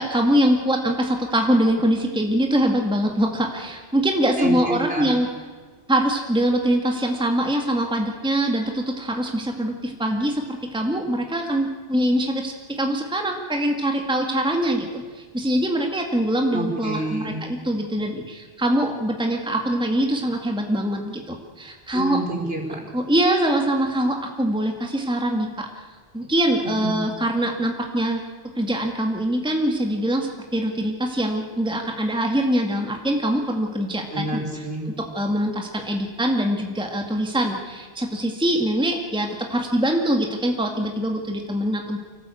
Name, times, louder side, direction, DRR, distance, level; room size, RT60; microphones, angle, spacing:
voice 1, 0.0-5.3 5.9-14.9 15.1-22.2 22.9-25.7 26.1-28.2 28.6-34.4 35.1-42.0, right 1 dB, 5° right, 2 dB, 1.9 m, -23 dB
voice 2, 4.4-5.1 16.5-17.5 21.9-22.8 26.6-27.0 34.1-34.9, right 1 dB, 60° right, 0 dB, 4.9 m, -28 dB
25.0 x 17.5 x 8.5 m, 1.5 s
omnidirectional pair, 1.1 m